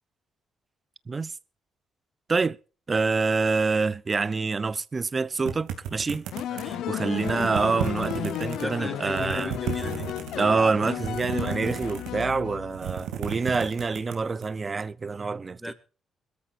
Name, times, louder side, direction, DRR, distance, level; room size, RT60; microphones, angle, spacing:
voice 1, 2.9-6.3 6.9-9.5 10.3-15.6, right 4 dB, 30° right, 0.7 m, -26 dB
sound 1, 5.4-6.8 7.2-8.6 9.0-10.4 10.9-12.3 12.6-14.5, right 9 dB, 90° right, 2.7 m, -33 dB
sound 2, 6.3-13.0, left 11 dB, 80° left, 1.0 m, -33 dB
voice 2, 6.5-6.8 8.6-10.1 15.6-15.7, equal, ahead, 2.3 m, -38 dB
22.0 x 14.0 x 2.6 m
cardioid pair, 90°, 0 cm